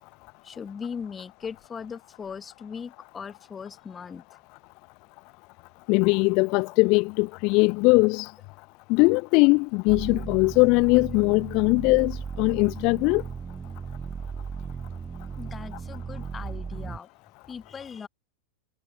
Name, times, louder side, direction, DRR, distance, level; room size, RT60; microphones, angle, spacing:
voice 1, 0.4-4.2 15.4-17.1 17.5-18.1, left 6 dB, 20° left, 1.4 m, -39 dB
voice 2, 5.9-8.3 8.9-13.2, left 29 dB, 45° left, 0.5 m, -21 dB
sound 1, 9.9-17.0, right 6 dB, 15° right, 0.6 m, -36 dB
figure-of-eight pair, 90°, 0 cm